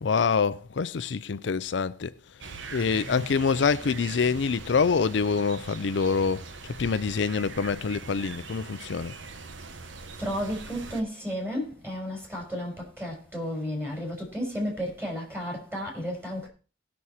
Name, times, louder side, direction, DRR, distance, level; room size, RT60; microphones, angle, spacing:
voice 1, 0.0-2.4 2.7-9.1, left 5 dB, 70° left, 0.5 m, -26 dB
sound 1, 2.4-11.0, right 3 dB, 90° right, 1.1 m, -42 dB
voice 2, 10.2-16.5, equal, 10° right, 4.1 m, -33 dB
18.0 x 6.2 x 4.2 m
head